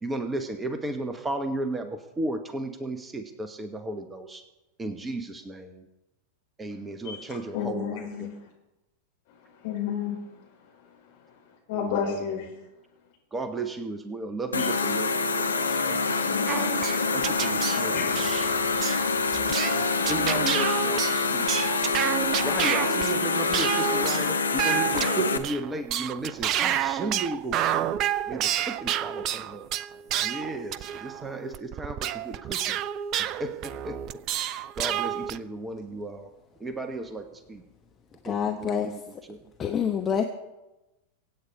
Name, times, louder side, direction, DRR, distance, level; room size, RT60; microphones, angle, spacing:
voice 1, 0.0-4.4 4.8-5.9 6.6-8.3 11.7-12.3 13.3-15.1 15.4-16.7 17.1-18.3 19.7-21.5 22.4-27.9 28.3-29.7 30.2-32.8 33.4-34.0 34.3-36.3 36.6-37.6 38.2-39.4, right 2 dB, 15° right, 8 dB, 1.2 m, -35 dB
voice 2, 7.5-8.5 9.3-10.4 10.7-12.5 14.6-14.7 16.1-16.8 17.9-18.4, left 7 dB, 50° left, -1 dB, 5.2 m, -33 dB
sound 1, 14.5-25.4, left 4 dB, 75° left, 1.1 m, -26 dB
sound 2, 16.5-35.4, right 11 dB, 35° right, 0.5 m, -30 dB
voice 3, 38.2-38.9 39.6-40.2, left 8 dB, 25° left, 4 dB, 1.1 m, -26 dB
24.0 x 8.5 x 4.8 m, 1.0 s
figure-of-eight pair, 90°, 0 cm